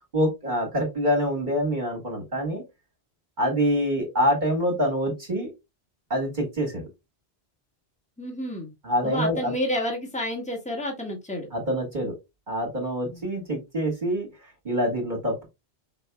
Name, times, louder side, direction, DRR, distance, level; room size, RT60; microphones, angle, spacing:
voice 1, 0.1-2.6 3.4-5.5 6.1-6.8 8.8-9.5 11.5-12.2 12.5-15.4, equal, 45° right, 1 dB, 1.7 m, -26 dB
voice 2, 8.2-8.7 9.0-11.5 13.1-13.2, left 1 dB, 5° left, 0 dB, 1.6 m, -30 dB
5.4 x 4.4 x 2.2 m, 0.22 s
omnidirectional pair, 1.1 m